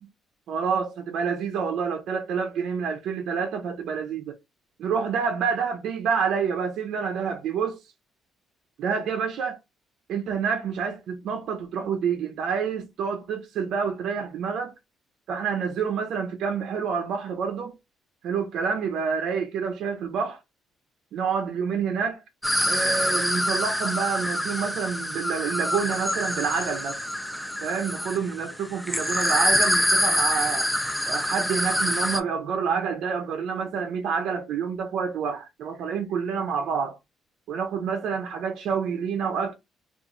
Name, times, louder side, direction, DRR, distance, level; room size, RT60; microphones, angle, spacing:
voice 1, 0.5-4.4 4.8-7.9 8.8-9.6 10.1-14.7 15.3-17.8 18.2-20.4 21.1-22.2 22.7-27.0 27.6-30.7 31.1-37.0 37.5-39.5, right 6 dB, 75° right, 0.4 m, -28 dB
sound 1, 22.4-32.2, equal, 5° left, 0.4 m, -26 dB
2.8 x 2.3 x 2.4 m
cardioid pair, 100°, 0 cm